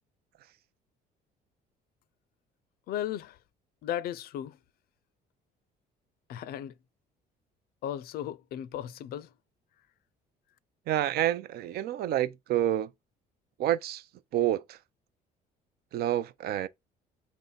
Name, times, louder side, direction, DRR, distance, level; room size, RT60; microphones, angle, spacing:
voice 1, 2.9-3.4 3.8-4.6 6.3-6.7 7.8-9.3, left 11 dB, 65° left, 0.4 m, -35 dB
voice 2, 10.9-12.9 13.6-14.0 14.3-14.8 15.9-16.7, right 12 dB, 70° right, 0.5 m, -28 dB
3.8 x 2.1 x 3.9 m
cardioid pair, 110°, 17 cm